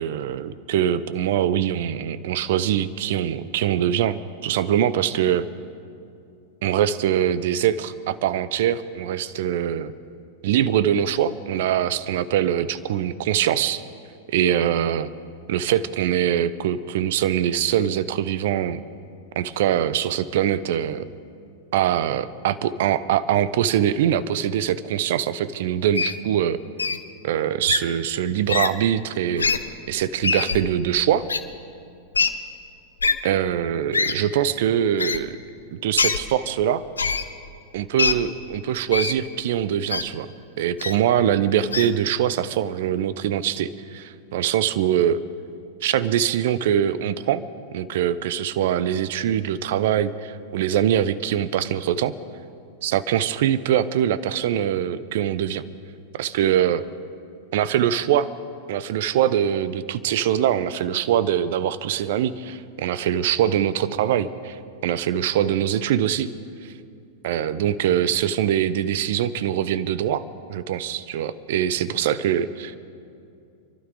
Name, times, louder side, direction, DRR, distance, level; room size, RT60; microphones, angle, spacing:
voice 1, 0.0-5.5 6.6-9.9 10.4-13.8 14.3-15.1 15.5-18.8 19.4-21.1 21.7-26.6 27.2-29.5 29.9-31.3 33.2-35.4 35.7-36.8 37.7-40.3 40.6-45.2 45.8-47.4 47.7-52.1 52.8-55.6 56.1-56.8 57.5-58.3 58.7-66.3 66.6-66.7 67.2-70.2 70.5-72.7, right 10 dB, 60° right, 16 dB, 0.6 m, -23 dB
Wild animals, 26.0-26.2 26.8-27.0 27.7-27.8 28.5-28.7 29.4-29.6 30.2-30.6 31.3-31.4 32.1-32.3 33.0-33.1 33.9-34.1 35.0-35.2 36.0-36.2 37.0-37.2 38.0-38.1 38.9-39.1 39.9-40.0 40.8-40.9 41.7-41.9, left 5 dB, 80° left, 0.7 m, -22 dB
27.0 x 12.0 x 3.8 m, 2.5 s
figure-of-eight pair, 95°, 0 cm